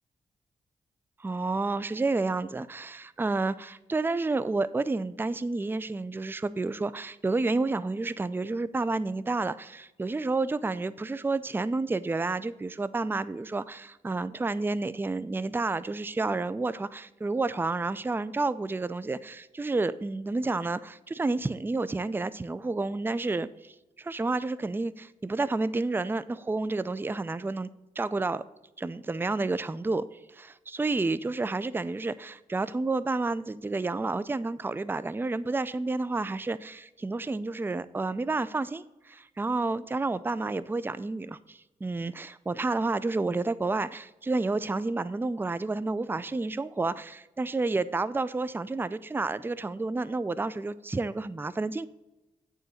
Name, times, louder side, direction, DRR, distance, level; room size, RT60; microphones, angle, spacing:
voice 1, 1.2-27.7 28.0-28.4 28.8-30.0 30.3-51.9, right 3 dB, 15° right, 0.4 m, -30 dB
8.9 x 3.8 x 6.4 m
cardioid pair, 55°, 15 cm